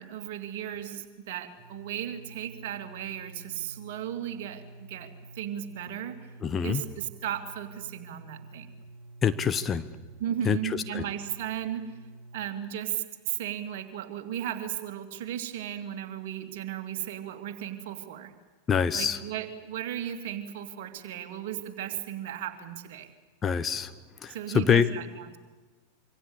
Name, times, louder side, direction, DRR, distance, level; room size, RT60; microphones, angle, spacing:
voice 1, 0.0-6.2 6.6-8.7 10.2-12.0 12.3-18.3 18.9-23.1 24.3-25.4, right 10 dB, 50° right, 7 dB, 2.7 m, -35 dB
sound 1, 1.6-12.4, right 2 dB, 20° right, 4.0 m, -49 dB
voice 2, 6.4-6.8 9.2-9.9 10.5-10.6 10.9-11.0 18.7-19.2 23.4-23.9 24.2-24.9, left 7 dB, 20° left, 11 dB, 1.0 m, -25 dB
26.0 x 25.0 x 8.4 m, 1.3 s
figure-of-eight pair, 90°, 0 cm